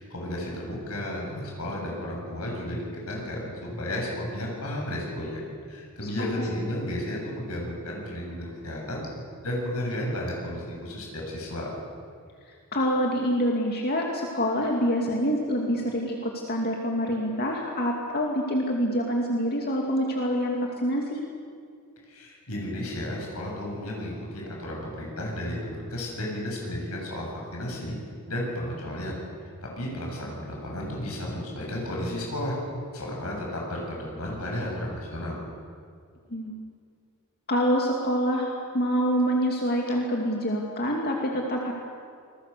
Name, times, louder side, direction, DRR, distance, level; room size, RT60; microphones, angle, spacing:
voice 1, 0.0-5.4 5.7-9.1 9.4-11.7 22.1-28.0 28.3-29.2 29.6-32.5 32.9-35.4, left 1 dB, 80° left, -2 dB, 7.5 m, -33 dB
voice 2, 6.0-6.5 12.7-21.2 36.3-36.5 37.5-41.7, equal, 45° left, 0 dB, 2.5 m, -26 dB
28.0 x 22.0 x 6.8 m, 2.2 s
head